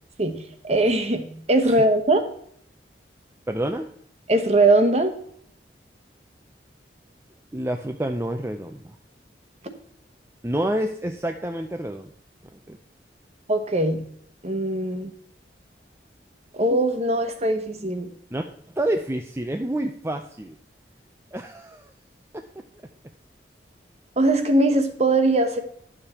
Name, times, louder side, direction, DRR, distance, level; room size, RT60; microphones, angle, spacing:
voice 1, 0.6-2.2 4.3-5.1 13.5-14.0 14.4-15.1 16.5-18.1 24.2-25.6, right 2 dB, 35° right, 8 dB, 1.1 m, -21 dB
voice 2, 3.5-3.9 7.5-9.0 10.4-12.1 12.7-12.8 18.3-18.5 18.8-20.6 21.3-21.9 22.3-22.4, right 1 dB, 15° right, 4 dB, 0.5 m, -28 dB
11.0 x 7.0 x 4.3 m, 0.66 s
head